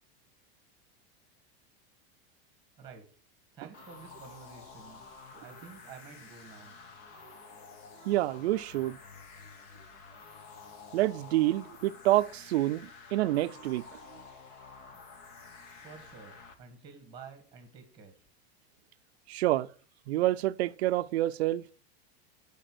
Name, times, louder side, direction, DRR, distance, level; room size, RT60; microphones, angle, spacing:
voice 1, 2.7-3.1 3.5-5.1 5.4-6.8 15.8-18.1, right 5 dB, 15° right, 1.6 m, -50 dB
sound 1, 3.7-16.5, left 4 dB, 30° left, 1.0 m, -50 dB
voice 2, 8.0-9.0 10.9-14.0 19.3-19.7 20.1-21.6, right 15 dB, 80° right, 0.6 m, -28 dB
9.1 x 5.2 x 6.1 m
supercardioid pair, 180°, 32 cm